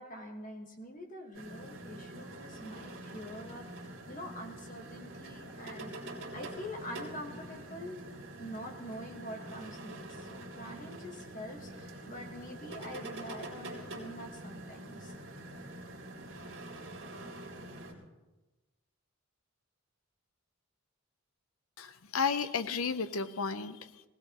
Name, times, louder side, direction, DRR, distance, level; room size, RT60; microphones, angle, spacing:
voice 1, 0.0-6.0 6.3-8.0 8.4-15.1, equal, 35° left, 3 dB, 1.5 m, -45 dB
sound 1, 1.3-17.9, right 1 dB, 55° right, 3.3 m, -45 dB
voice 2, 21.8-24.0, left 5 dB, 70° left, 12 dB, 0.7 m, -33 dB
19.5 x 17.0 x 3.0 m, 1.1 s
head